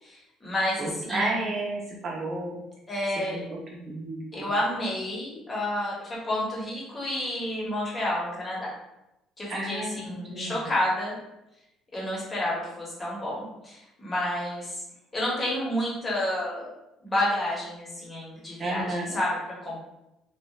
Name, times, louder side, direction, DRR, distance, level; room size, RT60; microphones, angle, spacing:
voice 1, 0.0-1.5 2.9-3.4 4.3-8.7 9.4-11.1 11.9-14.8 15.1-16.7 17.0-19.8, left 1 dB, 20° left, -5 dB, 0.8 m, -30 dB
voice 2, 0.8-2.6 3.3-4.5 9.5-10.6 18.6-19.2, right 2 dB, 40° right, -3 dB, 0.7 m, -32 dB
2.7 x 2.1 x 2.3 m, 0.91 s
cardioid pair, 140°, 0 cm